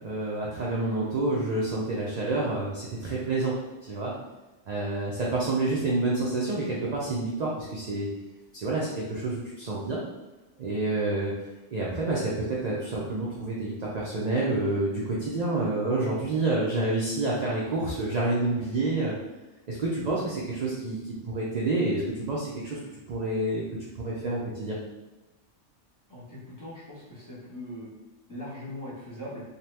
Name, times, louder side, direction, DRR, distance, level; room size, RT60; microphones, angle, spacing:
voice 1, 0.0-3.5 3.8-4.1 4.7-8.1 8.5-10.0 10.6-11.3 11.7-19.1 19.7-22.8 23.1-24.8, right 2 dB, 55° right, -5 dB, 0.4 m, -28 dB
voice 2, 26.1-27.9 28.3-29.4, left 1 dB, 15° left, -9 dB, 1.1 m, -40 dB
2.8 x 2.2 x 3.2 m, 1.1 s
omnidirectional pair, 1.2 m